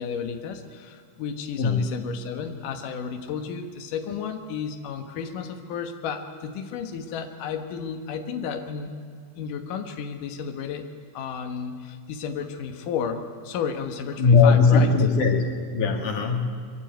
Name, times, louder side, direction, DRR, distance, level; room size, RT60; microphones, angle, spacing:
voice 1, 0.0-8.9 9.4-10.8 11.1-15.1, left 6 dB, 80° left, 5 dB, 1.8 m, -32 dB
voice 2, 1.6-1.9 14.2-16.5, left 4 dB, 45° left, 3 dB, 3.2 m, -19 dB
24.5 x 24.0 x 9.2 m, 2.1 s
omnidirectional pair, 5.9 m